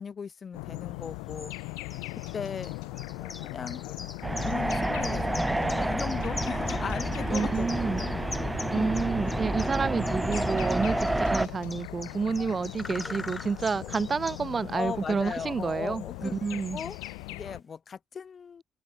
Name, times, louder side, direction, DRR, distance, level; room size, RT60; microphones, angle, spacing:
voice 1, 0.0-1.5 2.3-2.7 3.4-3.8 4.5-8.1 8.7-8.9 14.7-17.0 17.3-18.6, left 6 dB, 45° left, 4.2 m, -37 dB
sound 1, 0.5-17.6, left 36 dB, 85° left, 1.7 m, -40 dB
sound 2, 0.9-17.5, left 3 dB, 25° left, 3.2 m, -44 dB
sound 3, 4.2-11.5, right 1 dB, 10° right, 0.7 m, -29 dB
voice 2, 7.3-8.0 8.7-16.8, right 5 dB, 40° right, 2.4 m, -29 dB
hypercardioid pair, 55°, 0 cm